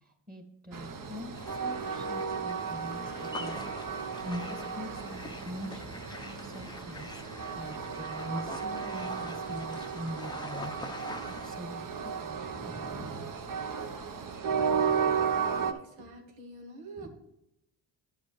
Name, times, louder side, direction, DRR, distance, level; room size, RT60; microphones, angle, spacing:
voice 1, 0.0-7.2 7.5-11.0 11.4-11.8 12.2-13.3 14.4-15.2 17.0-17.1, equal, 20° right, 4 dB, 1.5 m, -43 dB
Train, 0.7-15.7, right 6 dB, 45° right, 0.9 m, -34 dB
sound 1, 1.4-11.5, left 2 dB, 10° left, 0.6 m, -45 dB
voice 2, 15.7-17.1, right 2 dB, 90° right, 3 dB, 1.5 m, -46 dB
10.0 x 7.2 x 3.1 m, 0.84 s
supercardioid pair, 70°, 45 cm